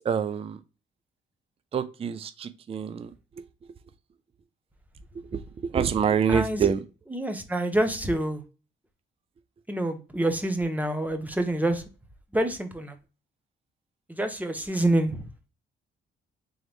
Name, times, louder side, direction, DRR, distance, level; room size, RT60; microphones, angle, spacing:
voice 1, 0.1-0.6 1.7-3.1 5.7-6.8, right 7 dB, 30° right, 0.4 m, -25 dB
voice 2, 6.3-6.7 7.1-8.4 9.7-11.8 12.3-12.9 14.2-15.2, right 1 dB, 10° right, 0.9 m, -27 dB
3.9 x 2.9 x 3.4 m
cardioid pair, 90°, 20 cm